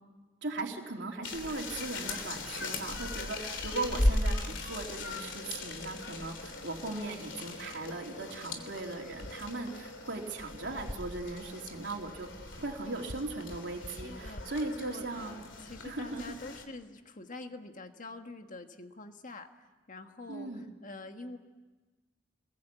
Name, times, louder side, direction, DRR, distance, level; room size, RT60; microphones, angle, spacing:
voice 1, 0.4-15.4 15.8-16.3 20.3-20.7, right 2 dB, 65° right, 0 dB, 3.1 m, -38 dB
sound 1, 1.2-16.6, left 1 dB, 70° left, 3.1 m, -37 dB
voice 2, 13.8-19.5 19.9-21.4, left 2 dB, 45° left, 6 dB, 1.7 m, -46 dB
29.0 x 21.5 x 8.4 m, 1.3 s
head